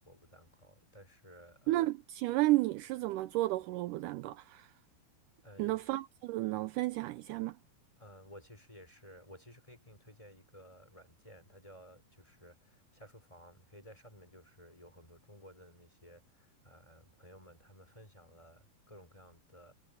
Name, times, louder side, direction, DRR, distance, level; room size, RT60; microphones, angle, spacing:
voice 1, 0.0-1.9 5.4-6.0 8.0-19.7, equal, 10° left, 5.2 m, -56 dB
voice 2, 1.7-4.7 5.6-7.6, right 17 dB, 85° right, 1.9 m, -32 dB
omnidirectional pair, 4.3 m